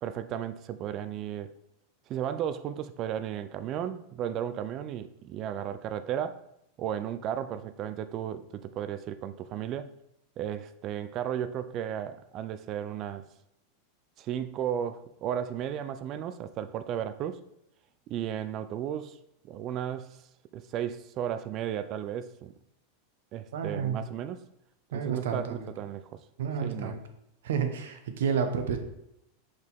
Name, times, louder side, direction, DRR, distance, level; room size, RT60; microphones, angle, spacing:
voice 1, 0.0-1.5 2.1-6.4 6.8-9.9 10.4-13.3 14.2-17.4 18.1-19.2 19.5-20.2 20.5-22.5 23.3-24.4 24.9-26.2 26.6-27.0, right 10 dB, 30° right, 0.4 m, -34 dB
voice 2, 23.5-24.0 24.9-25.7 26.4-27.0 27.4-28.8, right 7 dB, 85° right, 1.0 m, -30 dB
6.1 x 5.2 x 3.5 m
supercardioid pair, 170°, 0 cm